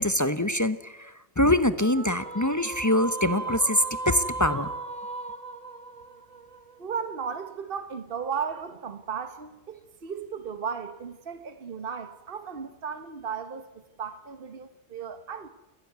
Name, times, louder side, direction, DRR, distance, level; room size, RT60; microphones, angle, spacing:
voice 1, 0.0-4.7, left 1 dB, 20° left, 0.8 m, -24 dB
sound 1, 1.8-7.2, right 3 dB, 35° right, 1.3 m, -36 dB
voice 2, 6.8-13.7 14.0-15.5, right 6 dB, 60° right, 1.4 m, -35 dB
30.0 x 12.0 x 9.5 m
omnidirectional pair, 1.0 m